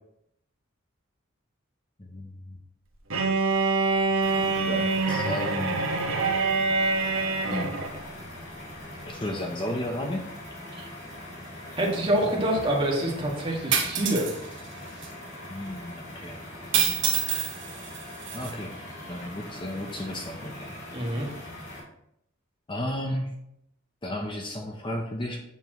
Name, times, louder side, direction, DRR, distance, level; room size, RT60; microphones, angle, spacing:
voice 1, 2.0-2.6 4.4-5.8 7.5-7.8 9.1-10.3 15.5-16.4 18.3-18.7 19.1-20.7 22.7-23.3 24.0-25.4, left 1 dB, 25° left, 2 dB, 0.7 m, -33 dB
Bowed string instrument, 3.1-8.0, right 3 dB, 80° right, 1.3 m, -25 dB
sound 1, 4.2-21.8, left 1 dB, 50° left, 2.6 m, -42 dB
voice 2, 11.8-14.3 20.9-21.3, right 1 dB, 25° right, -2 dB, 1.8 m, -26 dB
sound 2, 13.7-14.3 15.0-15.1 16.7-18.5, right 8 dB, 60° right, 1.2 m, -27 dB
8.3 x 7.0 x 3.0 m, 0.77 s
head